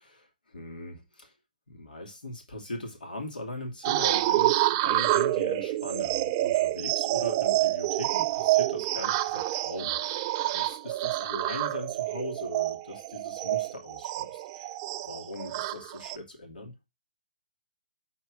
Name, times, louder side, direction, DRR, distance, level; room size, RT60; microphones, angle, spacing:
voice 1, 0.5-1.3 1.7-14.7 15.0-16.7, left 1 dB, 85° left, 3.1 m, -40 dB
sound 1, 3.8-16.2, right 15 dB, 25° right, 0.4 m, -28 dB
6.0 x 4.4 x 6.3 m
hypercardioid pair, 155°, 5 cm